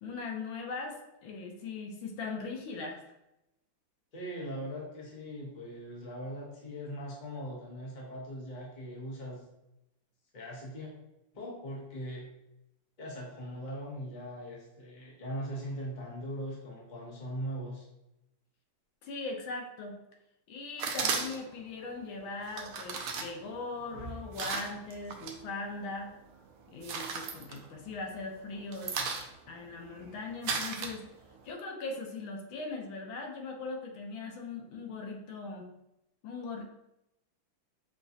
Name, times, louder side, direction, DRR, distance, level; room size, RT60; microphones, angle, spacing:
voice 1, 0.0-3.0 19.0-20.0 20.5-26.1 26.7-28.9 29.5-31.0 31.4-35.7 36.2-36.6, left 3 dB, 85° left, 2 dB, 1.5 m, -40 dB
voice 2, 4.1-9.5 10.3-10.9 11.3-12.3 13.0-17.9, equal, 35° left, -4 dB, 0.8 m, -40 dB
sound 1, 20.8-21.6 22.5-25.4 25.7-26.3 26.6-28.1 28.4-31.5, right 5 dB, 80° right, 0.8 m, -36 dB
6.2 x 2.3 x 2.7 m, 0.88 s
omnidirectional pair, 2.1 m